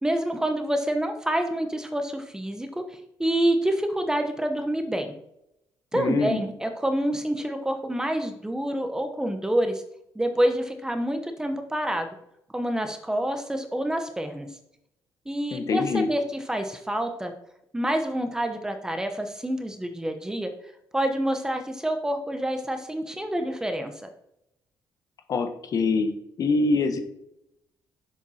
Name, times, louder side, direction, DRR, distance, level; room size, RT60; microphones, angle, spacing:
voice 1, 0.0-5.1 5.9-9.8 10.1-12.1 12.5-14.5 15.3-17.3 17.7-20.5 20.9-23.9, right 1 dB, 10° right, 6 dB, 1.0 m, -27 dB
voice 2, 5.9-6.4 15.5-16.1 25.3-26.1 26.4-27.0, left 3 dB, 45° left, 8 dB, 1.2 m, -24 dB
10.5 x 7.4 x 4.3 m, 0.81 s
cardioid pair, 145°, 8 cm